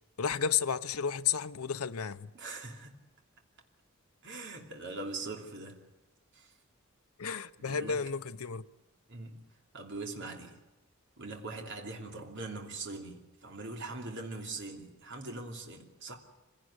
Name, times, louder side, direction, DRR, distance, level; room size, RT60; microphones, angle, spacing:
voice 1, 0.2-2.3 7.2-8.6, left 7 dB, 85° left, 0.8 m, -32 dB
voice 2, 2.3-3.0 4.2-5.9 6.3-6.5 7.6-8.0 9.1-9.4 9.7-10.6 11.2-16.2, right 3 dB, 55° right, 3.0 m, -42 dB
25.0 x 17.0 x 9.8 m
head